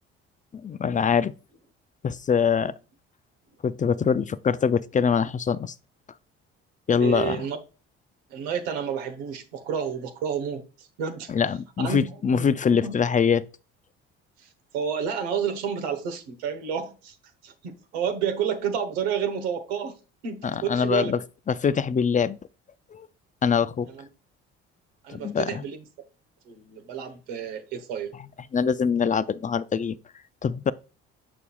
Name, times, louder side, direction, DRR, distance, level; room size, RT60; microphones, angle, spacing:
voice 1, 0.5-1.3 2.0-2.7 3.6-5.7 6.9-7.4 11.3-13.5 20.4-21.2 21.5-22.4 22.9-23.1 23.4-23.9 25.1-25.6 28.5-30.0 30.4-30.7, left 6 dB, 25° left, 0.4 m, -23 dB
voice 2, 7.0-7.6 8.3-11.3 11.8-12.0 12.3-12.5 12.7-13.0 14.4-17.1 17.4-20.0 20.2-21.1 23.9-24.1 25.0-25.8 26.5-28.1, right 7 dB, 85° right, 1.1 m, -30 dB
6.8 x 6.0 x 2.3 m
hypercardioid pair, 65°, 30 cm